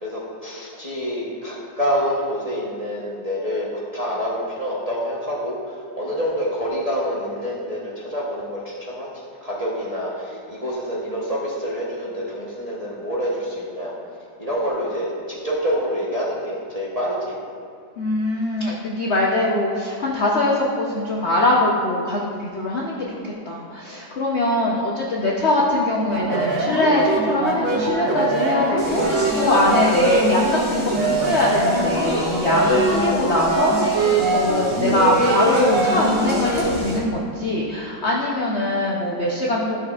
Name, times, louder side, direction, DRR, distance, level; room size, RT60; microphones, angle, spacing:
voice 1, 0.0-9.1 9.4-13.9 14.4-17.4, equal, 30° right, -7 dB, 0.6 m, -27 dB
voice 2, 18.0-30.4 30.7-39.8, left 2 dB, 85° left, -3 dB, 0.5 m, -22 dB
sound 1, 26.1-36.6, right 2 dB, 75° right, 1.7 m, -23 dB
Speech, 28.8-37.0, equal, 15° right, 1.4 m, -27 dB
12.0 x 6.5 x 2.4 m, 2.2 s
omnidirectional pair, 2.1 m